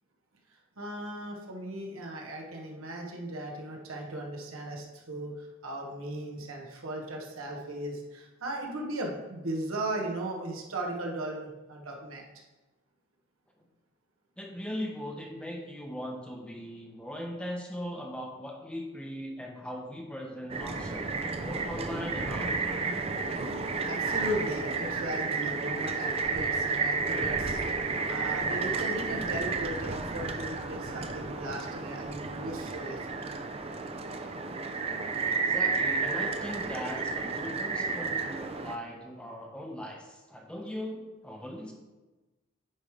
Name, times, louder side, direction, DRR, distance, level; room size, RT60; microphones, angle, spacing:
voice 1, 0.5-12.2 23.8-33.2, right 1 dB, 85° right, 0 dB, 1.3 m, -37 dB
voice 2, 14.4-21.1 21.4-22.5 35.3-41.7, equal, 5° left, 1 dB, 0.7 m, -39 dB
sound 1, 20.5-38.7, right 4 dB, 30° right, 0.4 m, -32 dB
8.9 x 3.2 x 5.0 m, 1.1 s
head